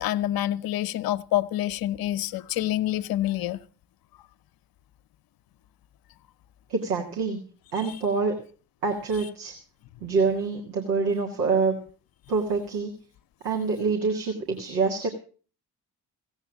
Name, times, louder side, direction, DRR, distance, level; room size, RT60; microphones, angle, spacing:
voice 1, 0.0-3.6, left 13 dB, 50° left, 0.9 m, -27 dB
voice 2, 6.7-7.4 7.7-8.3 8.8-9.5 10.0-11.7 12.3-12.9 13.4-15.1, right 4 dB, 80° right, 1.9 m, -26 dB
16.5 x 8.1 x 7.2 m
figure-of-eight pair, 40°, 46 cm